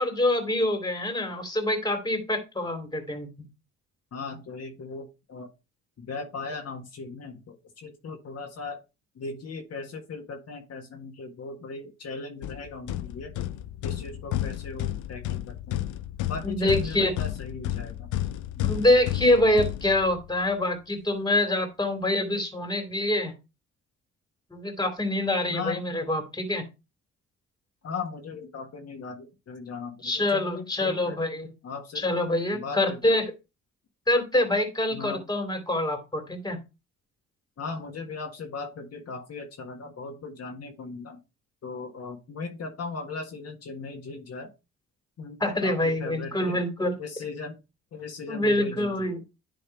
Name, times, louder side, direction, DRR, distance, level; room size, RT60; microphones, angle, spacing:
voice 1, 0.0-3.3 16.4-17.1 18.6-23.3 24.5-26.6 30.0-31.5 31.9-33.2 34.1-36.6 45.4-46.9 48.3-49.2, left 1 dB, 15° left, 6 dB, 2.6 m, -25 dB
voice 2, 4.1-5.5 6.0-8.8 9.1-13.3 13.8-15.9 16.3-18.1 25.5-25.8 27.8-31.2 31.6-32.0 32.5-33.1 34.9-35.3 37.6-41.2 41.6-44.5 45.2-46.6 47.0-47.6 47.9-49.1, left 4 dB, 55° left, 1 dB, 1.7 m, -38 dB
sound 1, 12.4-20.4, left 13 dB, 80° left, 0.6 m, -32 dB
10.5 x 3.6 x 4.6 m, 0.27 s
cardioid pair, 90°, 30 cm